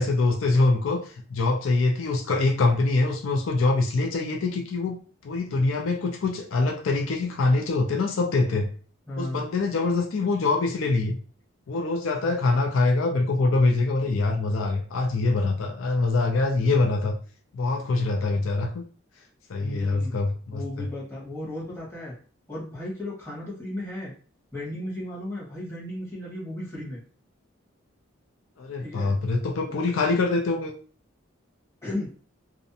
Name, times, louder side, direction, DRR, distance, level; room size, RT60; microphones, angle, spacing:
voice 1, 0.0-5.0 5.2-8.7 9.2-11.1 11.7-17.2 17.5-18.8 19.5-20.9 28.6-30.7, left 3 dB, 85° left, 3 dB, 0.4 m, -24 dB
voice 2, 9.1-9.4 12.2-12.3 19.6-20.2 20.5-22.1 22.5-24.1 24.5-27.0 28.8-29.1 29.7-29.8 31.8-32.1, left 1 dB, 15° left, -7 dB, 1.1 m, -35 dB
2.5 x 2.0 x 2.7 m, 0.41 s
head